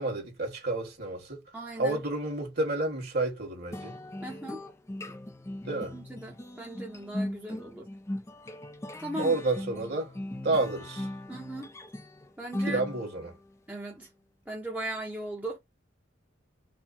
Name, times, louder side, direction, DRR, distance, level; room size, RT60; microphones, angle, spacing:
voice 1, 0.0-1.4 1.8-3.9 5.6-6.0 9.2-10.1 10.4-11.1 12.7-13.3, right 2 dB, 50° right, 1.8 m, -30 dB
voice 2, 1.5-2.0 4.2-4.6 5.9-7.9 9.0-9.4 11.3-11.7 12.4-12.8 13.7-14.1 14.5-15.6, right 1 dB, 10° right, 0.8 m, -38 dB
sound 1, 3.7-13.4, left 1 dB, 15° left, 0.5 m, -39 dB
4.2 x 2.2 x 4.2 m
head